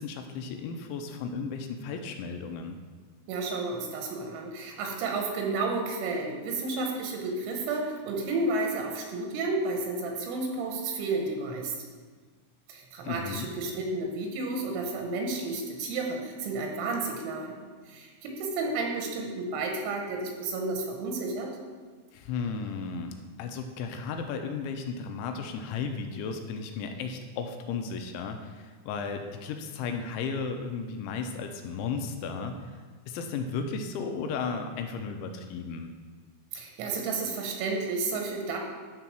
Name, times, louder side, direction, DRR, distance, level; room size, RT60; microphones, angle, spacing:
voice 1, 0.0-2.8 13.0-13.5 22.1-35.9, left 5 dB, 85° left, 5 dB, 2.9 m, -34 dB
voice 2, 3.3-11.7 12.7-17.6 17.9-21.5 36.5-38.6, right 3 dB, 85° right, 1 dB, 3.3 m, -31 dB
11.0 x 3.9 x 6.0 m, 1.5 s
omnidirectional pair, 5.5 m